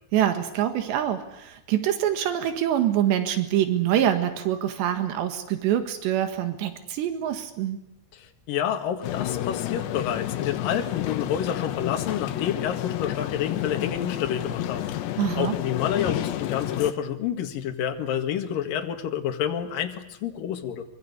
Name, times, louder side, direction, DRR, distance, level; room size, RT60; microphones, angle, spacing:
voice 1, 0.1-7.8 15.2-15.6, right 11 dB, 90° right, 8 dB, 3.9 m, -25 dB
voice 2, 8.1-20.8, left 9 dB, 60° left, 5 dB, 3.3 m, -29 dB
sound 1, 9.0-16.9, left 13 dB, 85° left, 3.4 m, -30 dB
25.5 x 24.0 x 8.3 m, 0.79 s
omnidirectional pair, 4.9 m